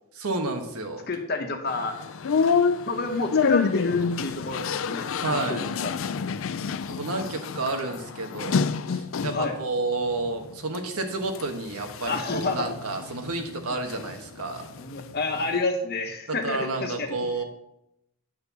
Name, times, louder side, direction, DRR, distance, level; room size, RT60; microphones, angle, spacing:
voice 1, 0.1-1.1 5.2-5.7 6.9-14.7 16.4-17.4, right 2 dB, 85° right, 5 dB, 1.4 m, -30 dB
voice 2, 1.1-2.0 2.9-5.9 9.3-9.6 12.0-12.7 14.8-17.1, left 3 dB, 45° left, 3 dB, 1.2 m, -29 dB
sound 1, 1.7-9.5 10.0-10.8 11.2-14.1 14.4-15.6, left 5 dB, 65° left, 0.4 m, -28 dB
9.7 x 4.4 x 6.9 m, 0.82 s
head